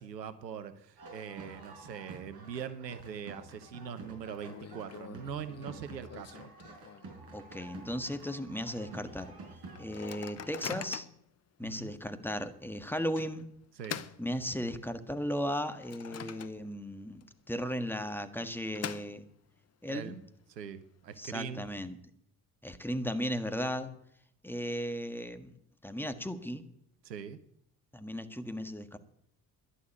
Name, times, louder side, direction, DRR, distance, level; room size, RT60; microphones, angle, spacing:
voice 1, 0.0-6.5 11.6-11.9 13.8-14.0 19.9-20.2 20.5-21.7 27.0-27.4, right 7 dB, 85° right, 13 dB, 0.9 m, -42 dB
sound 1, 1.0-10.6, right 3 dB, 50° right, 5.5 m, -50 dB
Microwave oven, 3.0-3.5 3.8-3.9 4.2-7.3 7.7-7.8 8.1-8.4 8.9-9.0 9.7-11.3 11.9-12.0 13.2-15.0 15.4-16.9 17.2-17.3 18.2-19.6, left 9 dB, 30° left, 0.9 m, -45 dB
voice 2, 7.3-9.3 9.8-11.1 11.6-13.5 14.2-19.2 19.8-20.1 21.2-21.9 22.6-23.9 24.4-25.6 25.8-26.7 27.9-29.0, equal, 5° left, 9 dB, 1.6 m, -36 dB
11.5 x 11.5 x 9.5 m, 0.72 s
figure-of-eight pair, 55°, 48 cm